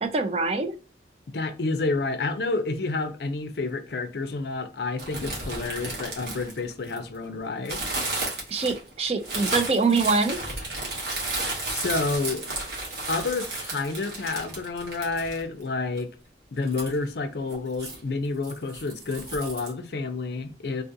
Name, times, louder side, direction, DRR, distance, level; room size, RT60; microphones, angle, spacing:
voice 1, 0.0-0.7 8.5-10.4, right 4 dB, 35° right, 0.4 m, -24 dB
voice 2, 1.3-7.8 11.7-12.5 13.1-16.1 16.5-20.8, left 3 dB, 65° left, 0.5 m, -29 dB
sound 1, 5.0-7.2 7.6-15.6 16.0-16.1 16.6-17.0 17.5-18.0 18.4-19.7, right 2 dB, 70° right, 1.3 m, -33 dB
3.6 x 2.4 x 2.6 m
head